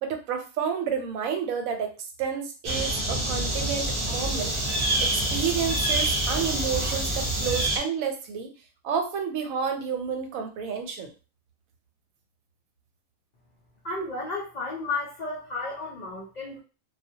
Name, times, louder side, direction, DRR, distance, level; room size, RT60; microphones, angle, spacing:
voice 1, 0.0-1.9 2.2-8.5 8.8-11.1, right 7 dB, 85° right, 5 dB, 1.0 m, -30 dB
sound 1, 2.6-7.8, right 1 dB, 30° right, 0.6 m, -26 dB
voice 2, 13.8-16.6, left 3 dB, 90° left, -3 dB, 0.3 m, -33 dB
2.2 x 2.1 x 2.6 m, 0.34 s
omnidirectional pair, 1.4 m